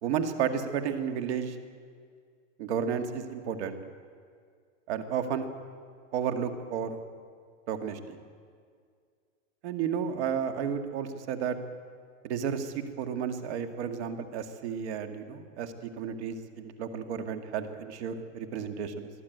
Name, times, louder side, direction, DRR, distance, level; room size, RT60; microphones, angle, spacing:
voice 1, 0.0-1.6 2.6-3.8 4.9-5.5 6.1-7.0 7.7-8.2 9.6-11.6 12.2-19.1, right 7 dB, 60° right, 8 dB, 2.0 m, -32 dB
22.0 x 13.5 x 9.2 m, 2.1 s
supercardioid pair, 160°, 39 cm